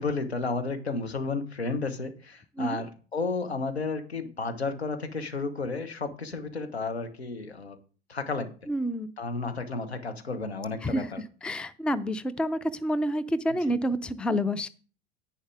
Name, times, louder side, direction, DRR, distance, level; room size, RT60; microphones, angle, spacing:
voice 1, 0.0-7.8 8.1-8.5 9.2-11.2 13.6-13.7, left 3 dB, 90° left, 7 dB, 1.5 m, -32 dB
voice 2, 8.7-9.1 10.8-11.1 11.4-14.7, equal, 5° left, 14 dB, 0.5 m, -28 dB
10.5 x 9.3 x 3.5 m, 0.39 s
figure-of-eight pair, 90°, 31 cm